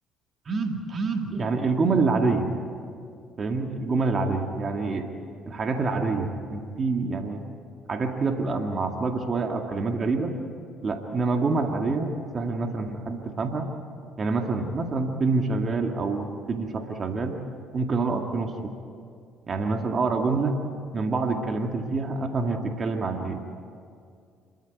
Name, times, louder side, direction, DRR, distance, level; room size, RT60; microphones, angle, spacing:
voice 1, 0.5-2.5 3.4-5.1 5.5-7.4 7.9-10.3 10.8-13.7 14.2-17.4 17.7-18.7 19.5-20.6 20.9-23.4, right 3 dB, 40° right, 3 dB, 2.2 m, -26 dB
27.0 x 13.5 x 9.6 m, 2.3 s
hypercardioid pair, 65°, 0 cm